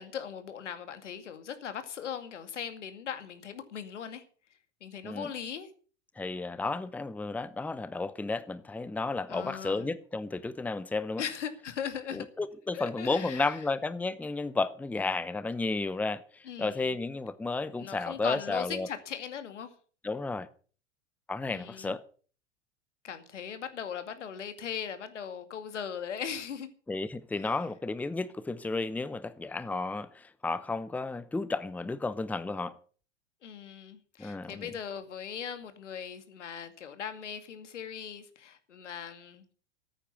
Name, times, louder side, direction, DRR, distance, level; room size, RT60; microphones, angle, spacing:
voice 1, 0.0-4.2 4.8-5.7 9.3-9.9 11.2-12.3 12.7-13.6 16.4-16.9 17.8-19.7 21.5-22.0 23.0-26.7 27.4-27.5 33.4-39.5, left 8 dB, 80° left, 2.3 m, -39 dB
voice 2, 6.2-11.2 12.1-18.9 20.0-20.5 21.3-22.0 26.9-32.8 34.2-34.7, left 3 dB, 5° left, 0.7 m, -33 dB
14.5 x 9.0 x 7.0 m
hypercardioid pair, 95°, 36 cm